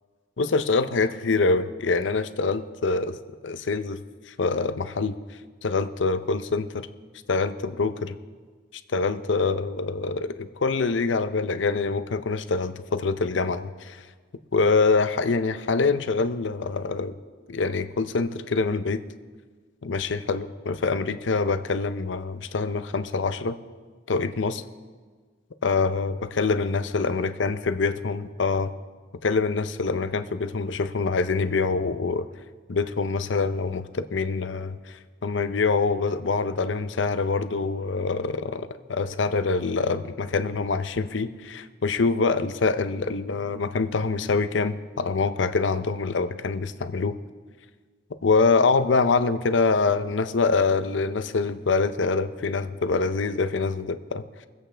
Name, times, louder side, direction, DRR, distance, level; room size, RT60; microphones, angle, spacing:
voice 1, 0.4-3.2 3.4-4.0 4.4-5.2 5.6-6.9 7.3-8.2 8.9-14.0 14.5-17.1 17.5-19.0 19.8-23.6 24.1-24.6 25.6-28.7 29.2-32.3 32.7-47.2 48.2-54.2, left 4 dB, 70° left, 11 dB, 0.6 m, -25 dB
23.5 x 8.0 x 3.4 m, 1.5 s
head